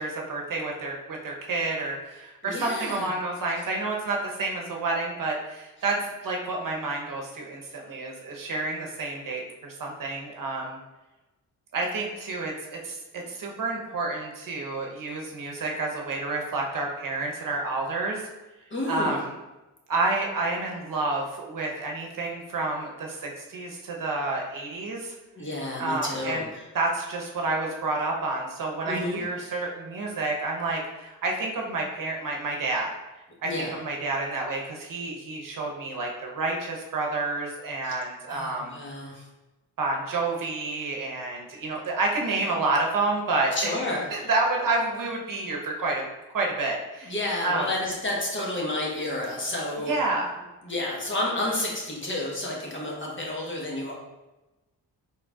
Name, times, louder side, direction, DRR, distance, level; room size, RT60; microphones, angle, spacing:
voice 1, 0.0-6.0 6.2-10.8 11.7-18.2 18.9-19.3 19.9-25.1 25.8-26.5 26.7-32.9 33.4-38.7 39.8-43.7 44.1-46.1 46.3-47.1 47.4-47.6 49.8-50.3, right 3 dB, 55° right, 0 dB, 0.9 m, -29 dB
voice 2, 2.4-3.1 13.2-13.3 18.7-19.2 25.3-26.6 28.8-29.5 33.4-33.8 37.8-38.0 38.3-39.2 43.5-44.3 47.0-50.0 50.6-53.9, left 1 dB, 30° left, -2 dB, 1.2 m, -31 dB
4.3 x 3.7 x 2.3 m, 1.1 s
cardioid pair, 60°, 38 cm